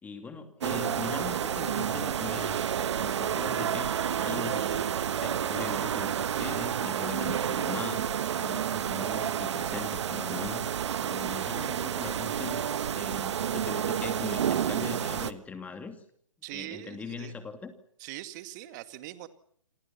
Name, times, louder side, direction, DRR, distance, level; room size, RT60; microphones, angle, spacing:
voice 1, 0.0-12.6 12.9-16.0 16.5-17.7, left 4 dB, 10° left, 7 dB, 2.7 m, -41 dB
sound 1, 0.6-15.3, right 9 dB, 55° right, 1.4 m, -30 dB
voice 2, 16.4-17.4 18.0-19.3, right 15 dB, 30° right, 11 dB, 2.2 m, -42 dB
28.0 x 26.0 x 5.8 m, 0.66 s
hypercardioid pair, 140°, 18 cm